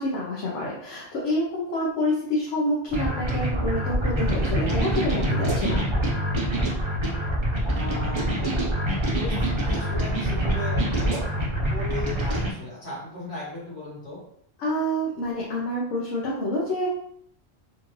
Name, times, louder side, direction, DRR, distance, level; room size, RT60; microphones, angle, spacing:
voice 1, 0.0-5.9 14.6-16.9, left 1 dB, 70° left, -4 dB, 1.1 m, -27 dB
sound 1, 2.9-12.5, right 1 dB, 30° right, 0.6 m, -25 dB
voice 2, 7.7-8.5 9.1-10.8 11.7-14.2, left 2 dB, 55° left, -6 dB, 2.0 m, -36 dB
4.2 x 2.5 x 3.1 m, 0.67 s
omnidirectional pair, 1.3 m